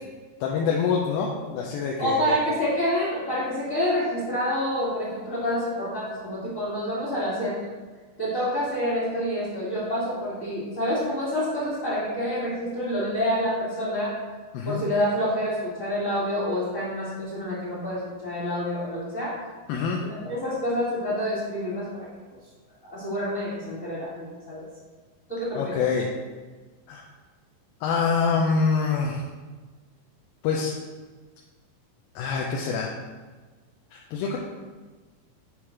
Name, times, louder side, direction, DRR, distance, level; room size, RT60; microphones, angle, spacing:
voice 1, 0.4-2.4 14.5-14.8 19.7-20.0 25.5-26.1 26.9-27.0 27.8-29.2 30.4-30.7 32.2-32.9 33.9-34.4, left 5 dB, 80° left, -1 dB, 2.5 m, -25 dB
voice 2, 2.0-7.6 8.2-14.1 14.7-19.3 20.1-22.1 22.8-24.7 25.3-25.8, equal, 30° left, -11 dB, 1.7 m, -27 dB
8.8 x 3.2 x 5.7 m, 1.3 s
omnidirectional pair, 4.2 m